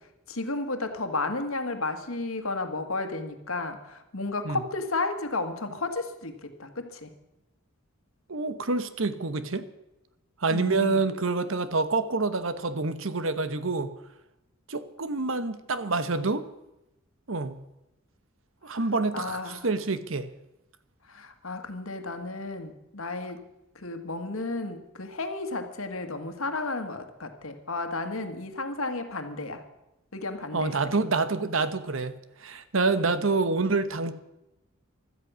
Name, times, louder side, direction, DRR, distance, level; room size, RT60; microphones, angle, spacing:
voice 1, 0.3-7.1 10.5-11.0 18.7-18.8 19.1-19.7 21.1-23.5 23.7-29.6 30.1-30.7, left 3 dB, 75° left, 7 dB, 1.8 m, -33 dB
voice 2, 8.3-9.7 10.4-13.9 14.7-16.5 17.3-17.6 18.6-20.3 30.5-32.1 32.4-34.1, right 3 dB, 65° right, 12 dB, 1.1 m, -27 dB
16.5 x 12.5 x 6.3 m, 0.92 s
head